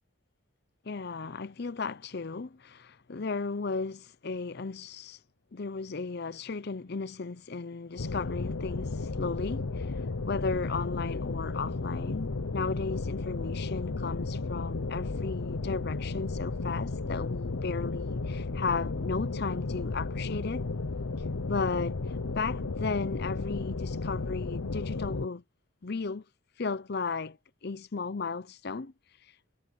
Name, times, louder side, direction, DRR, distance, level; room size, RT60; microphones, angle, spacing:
voice 1, 0.8-5.2 5.5-9.9 10.3-20.7 21.4-22.0 22.3-25.4 25.8-26.2 26.6-27.4 27.6-28.9, left 4 dB, 50° left, 0.6 m, -35 dB
sound 1, 8.0-25.3, left 3 dB, 85° left, 0.8 m, -33 dB
head